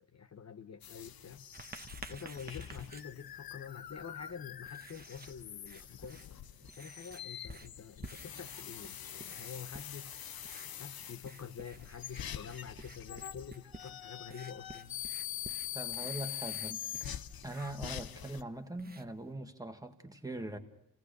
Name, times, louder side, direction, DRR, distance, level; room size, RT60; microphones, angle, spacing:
voice 1, 0.0-1.5 2.1-6.2 6.5-10.2 10.5-15.0 16.0-16.1, left 7 dB, 50° left, 7 dB, 0.9 m, -47 dB
sound 1, 0.8-18.4, left 11 dB, 85° left, 0.8 m, -44 dB
Writing, 1.5-19.3, right 3 dB, 25° right, 1.1 m, -54 dB
voice 2, 15.7-17.1 17.4-20.6, right 1 dB, 10° right, 6 dB, 1.8 m, -42 dB
29.0 x 17.5 x 6.7 m, 0.81 s
wide cardioid pair, 145°, 35 cm